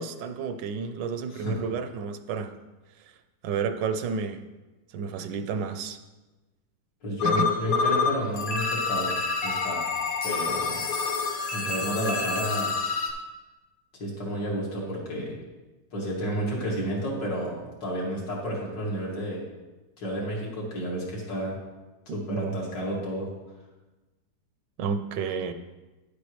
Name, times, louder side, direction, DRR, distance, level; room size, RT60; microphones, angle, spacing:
voice 1, 0.0-2.6 3.4-4.4 4.9-6.0 7.2-7.4 11.6-11.9 22.1-22.6 24.8-25.5, right 5 dB, 80° right, 10 dB, 1.3 m, -31 dB
voice 2, 7.0-9.8 10.2-10.8 11.5-12.7 14.0-15.4 15.9-19.4 20.0-21.6 22.1-23.3, equal, 75° left, -4 dB, 2.9 m, -31 dB
sound 1, 7.2-8.1 8.4-13.1, left 4 dB, 55° left, 1.4 m, -27 dB
10.5 x 8.3 x 3.2 m, 1.1 s
omnidirectional pair, 1.9 m